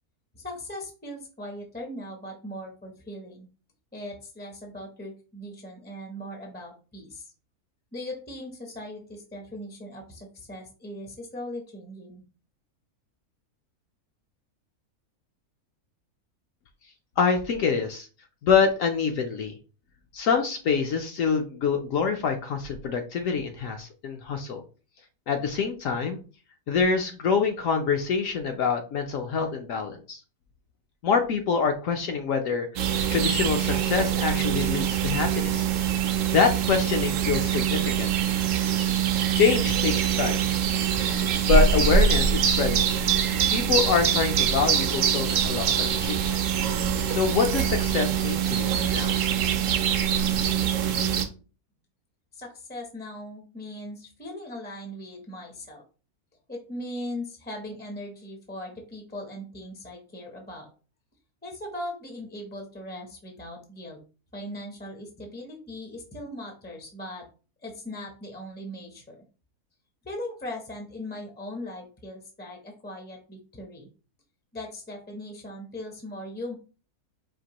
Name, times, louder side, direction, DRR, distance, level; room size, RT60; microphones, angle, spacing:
voice 1, 0.3-3.5 3.9-7.3 7.9-12.2 52.3-55.8 56.5-60.7 61.4-64.0 64.3-67.2 67.6-69.2 70.0-73.9 74.5-76.5, left 1 dB, 15° left, 2 dB, 0.4 m, -39 dB
voice 2, 17.2-18.1 18.4-19.5 20.1-24.6 25.3-26.2 26.7-30.2 31.0-35.7 36.0-38.1 39.3-40.4 41.5-42.9 43.5-46.4 47.1-49.2, left 6 dB, 70° left, 4 dB, 0.9 m, -26 dB
sound 1, 32.8-51.2, right 8 dB, 65° right, 0.9 m, -24 dB
5.1 x 2.6 x 2.9 m, 0.36 s
omnidirectional pair, 1.6 m